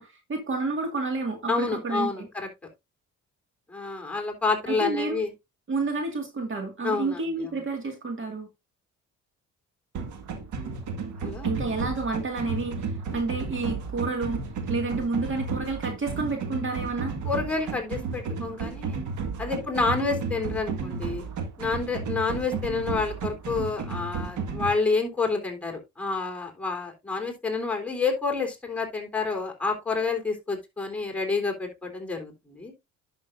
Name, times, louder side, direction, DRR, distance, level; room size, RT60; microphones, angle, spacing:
voice 1, 0.0-2.3 4.7-5.2 5.7-8.5 11.4-14.4 14.7-17.1, right 3 dB, 40° right, 2.0 m, -30 dB
voice 2, 1.5-2.5 3.7-5.3 6.8-7.5 11.2-11.5 17.2-19.0 19.4-21.2 21.6-32.7, left 4 dB, 5° left, 3.5 m, -29 dB
sound 1, 9.9-24.7, right 4 dB, 75° right, 1.8 m, -33 dB
11.0 x 6.5 x 2.6 m
cardioid pair, 90°, 30 cm